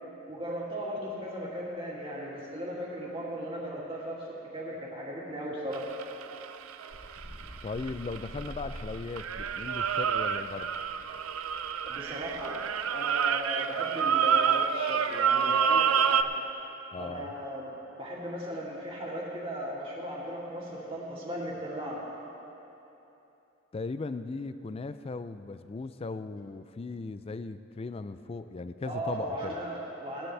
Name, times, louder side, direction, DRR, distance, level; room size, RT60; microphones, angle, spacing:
voice 1, 0.3-5.9 11.9-16.3 17.0-17.7 18.0-22.0 28.8-30.3, equal, 25° right, -5 dB, 2.4 m, -37 dB
sound 1, 5.7-8.8 9.2-16.2, right 7 dB, 85° right, 0.5 m, -28 dB
sound 2, 6.9-13.5, equal, 55° left, 2.7 m, -48 dB
voice 2, 7.6-10.7 16.9-17.3 23.7-29.5, left 3 dB, 30° left, 12 dB, 0.3 m, -38 dB
19.5 x 11.5 x 3.3 m, 3.0 s
head